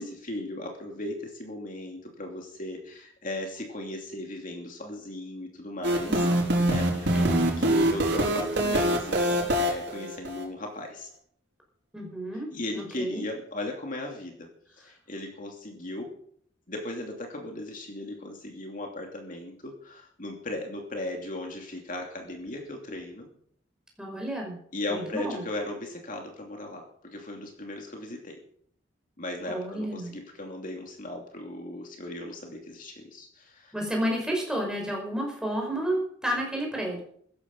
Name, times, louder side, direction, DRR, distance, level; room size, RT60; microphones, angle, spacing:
voice 1, 0.0-6.2 6.6-11.1 12.5-14.5 14.8-16.1 16.7-23.3 24.7-26.8 27.1-28.4 29.2-33.7, left 1 dB, 45° left, 2 dB, 2.8 m, -37 dB
sound 1, 5.8-10.4, right 1 dB, 65° right, 5.2 m, -25 dB
voice 2, 6.1-6.8 7.1-7.4 11.9-12.5 12.7-13.2 24.0-24.6 24.9-25.5 29.5-30.2 33.7-37.0, right 1 dB, 5° right, 0 dB, 5.2 m, -31 dB
16.0 x 14.0 x 5.4 m, 0.65 s
head